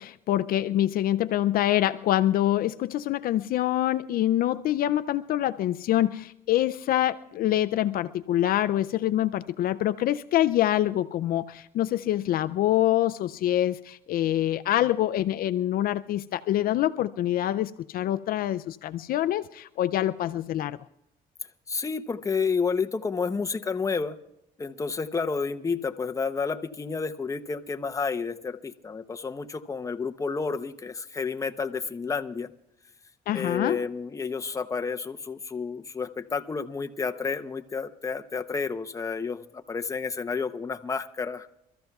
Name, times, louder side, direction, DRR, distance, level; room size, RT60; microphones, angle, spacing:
voice 1, 0.0-20.8 33.3-33.8, left 13 dB, 60° left, 0.4 m, -25 dB
voice 2, 21.7-24.2 24.6-32.5 33.3-41.5, left 5 dB, 20° left, 0.7 m, -30 dB
28.0 x 13.5 x 2.3 m
cardioid pair, 110°, 17 cm